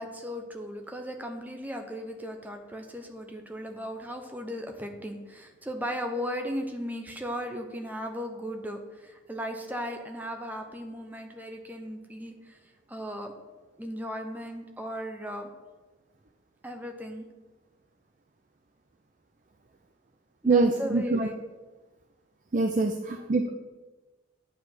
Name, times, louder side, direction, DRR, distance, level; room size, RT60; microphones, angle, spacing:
voice 1, 0.0-12.6 12.9-13.3 13.8-15.5 16.6-17.3 20.4-21.4, equal, 10° right, 4 dB, 0.9 m, -36 dB
voice 2, 20.4-21.3 22.5-23.5, right 3 dB, 40° right, 5 dB, 0.5 m, -24 dB
8.9 x 4.8 x 7.7 m, 1.2 s
head